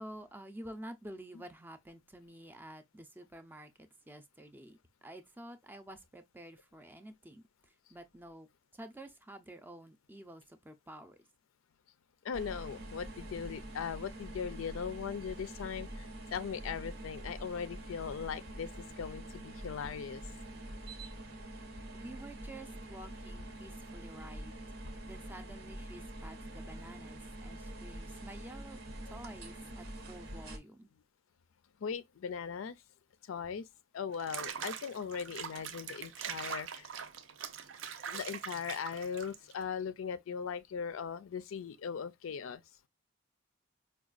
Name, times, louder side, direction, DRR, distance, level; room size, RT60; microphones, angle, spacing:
voice 1, 0.0-7.4 7.9-8.5 8.7-11.2 21.9-24.5 25.1-28.8 29.1-30.9, right 1 dB, 10° right, 0.4 m, -50 dB
voice 2, 12.2-16.0 16.3-18.7 19.0-20.2 29.1-29.2 31.8-32.8 33.3-33.6 33.9-36.9 38.1-42.6, left 6 dB, 85° left, 0.4 m, -39 dB
sound 1, 12.3-30.6, right 1 dB, 85° right, 0.9 m, -45 dB
Water / Bathtub (filling or washing), 34.1-39.6, right 7 dB, 70° right, 0.5 m, -42 dB
4.8 x 2.3 x 2.3 m
head